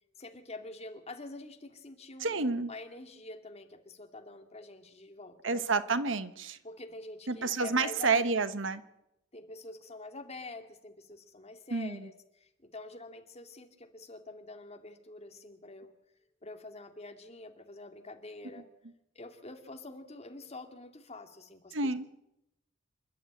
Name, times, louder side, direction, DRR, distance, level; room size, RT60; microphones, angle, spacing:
voice 1, 0.2-5.6 6.6-8.2 9.3-15.9 16.4-18.7 19.1-21.9, left 2 dB, 35° left, 5 dB, 2.3 m, -46 dB
voice 2, 2.2-2.7 5.4-6.6 7.3-8.8 11.7-12.1 21.7-22.0, right 4 dB, 75° right, 12 dB, 1.2 m, -29 dB
27.5 x 11.5 x 9.1 m, 0.86 s
head